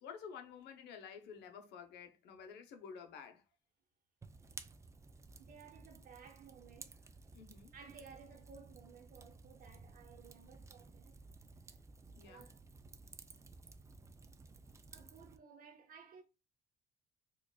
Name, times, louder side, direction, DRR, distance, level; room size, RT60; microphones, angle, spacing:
voice 1, 0.0-3.4 7.3-7.7 12.1-12.5, left 7 dB, 80° left, 0.8 m, -51 dB
Fire, 4.2-15.4, right 3 dB, 15° right, 0.4 m, -56 dB
voice 2, 5.4-7.0 7.7-11.2 12.2-12.6 14.9-16.2, right 6 dB, 60° right, 1.0 m, -57 dB
4.5 x 2.3 x 2.3 m
cardioid pair, 110°, 17 cm